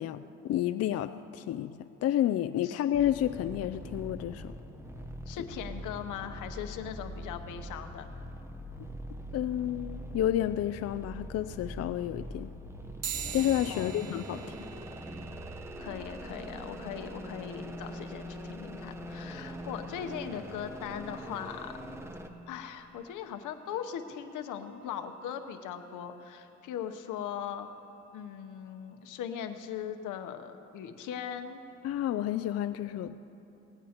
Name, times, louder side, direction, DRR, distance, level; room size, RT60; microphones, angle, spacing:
voice 1, 0.0-4.5 9.3-12.5 13.3-14.5 31.8-33.2, left 12 dB, 55° left, 11 dB, 0.4 m, -30 dB
sound 1, 2.9-22.3, equal, 10° right, 0.9 m, -43 dB
voice 2, 5.3-8.1 13.7-14.0 15.8-21.7 22.5-27.7 28.1-31.6, left 8 dB, 85° left, 8 dB, 0.9 m, -39 dB
sound 2, 13.0-22.9, right 9 dB, 55° right, 0.7 m, -47 dB
19.0 x 16.0 x 2.9 m, 2.8 s
cardioid pair, 90°, 30 cm